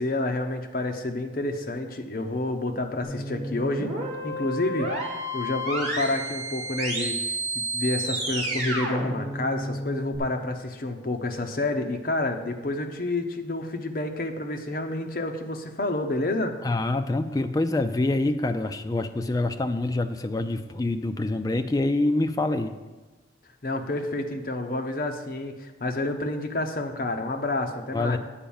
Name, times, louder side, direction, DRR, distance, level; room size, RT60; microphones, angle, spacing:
voice 1, 0.0-4.0 4.2-4.9 5.3-7.2 7.5-16.5 23.6-28.2, left 2 dB, 50° left, 5 dB, 0.8 m, -29 dB
sound 1, 3.0-10.2, right 1 dB, 35° right, 2.2 m, -31 dB
voice 2, 16.6-22.7 27.9-28.2, left 2 dB, 20° left, 7 dB, 0.4 m, -26 dB
8.9 x 4.6 x 7.1 m, 1.2 s
head